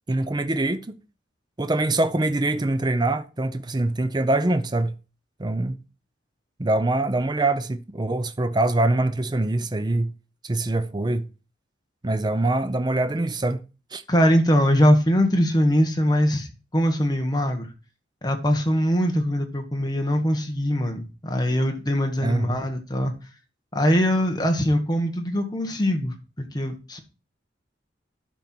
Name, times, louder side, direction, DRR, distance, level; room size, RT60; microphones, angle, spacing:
voice 1, 0.1-0.9 1.6-4.9 5.4-5.8 6.6-10.1 10.4-11.3 12.0-13.6 13.9-14.0 22.2-22.6, right 2 dB, 20° right, 0.5 m, -24 dB
voice 2, 14.1-16.5 16.7-17.7 18.2-23.1 23.7-27.0, equal, 20° left, 1.4 m, -22 dB
11.5 x 4.5 x 4.4 m
head